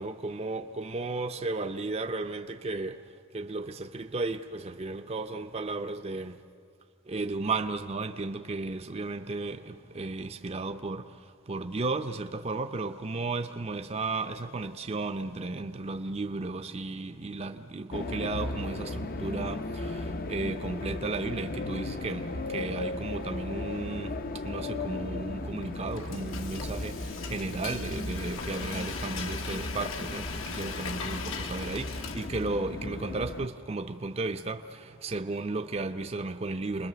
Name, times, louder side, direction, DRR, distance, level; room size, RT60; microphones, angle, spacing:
voice 1, 0.0-3.0 3.3-6.4 7.1-36.9, right 3 dB, 30° right, 0.6 m, -34 dB
sound 1, 17.9-33.5, left 2 dB, 45° left, 0.7 m, -36 dB
Frying (food), 25.6-32.7, left 4 dB, 75° left, 1.4 m, -39 dB
27.5 x 21.0 x 6.8 m
head